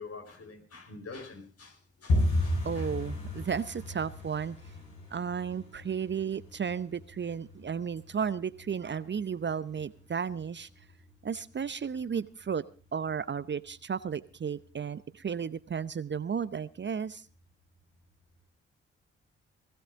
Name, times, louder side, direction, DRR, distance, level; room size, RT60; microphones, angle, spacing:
voice 1, 0.0-2.9, left 4 dB, 50° left, 4.6 m, -46 dB
sound 1, 2.1-12.8 13.1-13.8 14.0-14.3 14.6-15.0 15.3-15.4 15.9-16.4 16.7-16.8 17.3-17.4, left 1 dB, 70° left, 8.0 m, -35 dB
voice 2, 2.6-4.6 5.1-10.7 11.2-12.6 12.9-17.2, right 7 dB, 35° right, 0.8 m, -33 dB
20.0 x 16.0 x 3.7 m
hypercardioid pair, 40°, 31 cm